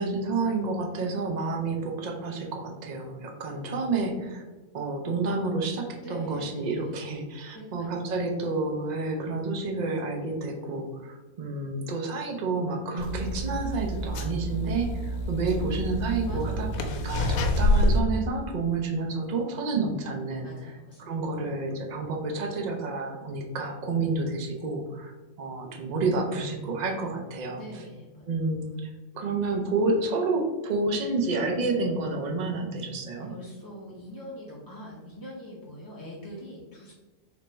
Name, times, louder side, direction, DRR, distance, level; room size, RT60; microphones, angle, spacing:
voice 1, 0.0-4.4 4.7-20.5 21.0-25.1 25.4-27.6 28.3-33.3, right 3 dB, 60° right, 2 dB, 0.4 m, -29 dB
voice 2, 6.0-6.9 7.5-8.2 16.2-17.0 20.4-21.2 27.5-28.3 33.2-36.9, left 1 dB, 30° left, -6 dB, 0.3 m, -43 dB
sound 1, 13.0-18.0, left 1 dB, 90° left, 1.1 m, -27 dB
3.5 x 2.5 x 4.3 m, 1.2 s
omnidirectional pair, 1.5 m